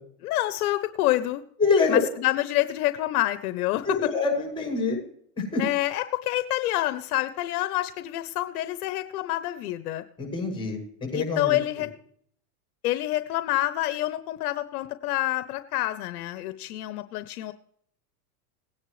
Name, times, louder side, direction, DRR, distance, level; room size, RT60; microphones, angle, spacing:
voice 1, 0.2-1.4 1.9-4.1 5.6-10.0 11.1-11.9 12.8-17.5, left 15 dB, 70° left, 11 dB, 0.9 m, -27 dB
voice 2, 1.6-2.0 3.9-5.0 5.4-5.6 10.2-11.6, left 4 dB, 10° left, 0 dB, 6.6 m, -25 dB
19.0 x 9.8 x 3.2 m, 0.64 s
supercardioid pair, 130°, 47 cm